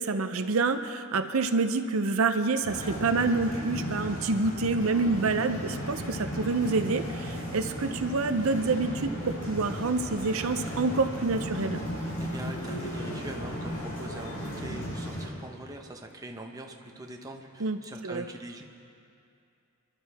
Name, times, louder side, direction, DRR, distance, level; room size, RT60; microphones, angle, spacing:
voice 1, 0.0-11.8 17.6-17.8 18.0-18.3, right 3 dB, 75° right, 8 dB, 0.7 m, -27 dB
sound 1, 2.6-15.3, equal, 85° left, 4.7 m, -35 dB
voice 2, 12.2-18.6, right 1 dB, 15° right, 2 dB, 1.0 m, -42 dB
28.5 x 11.5 x 3.5 m, 2.5 s
head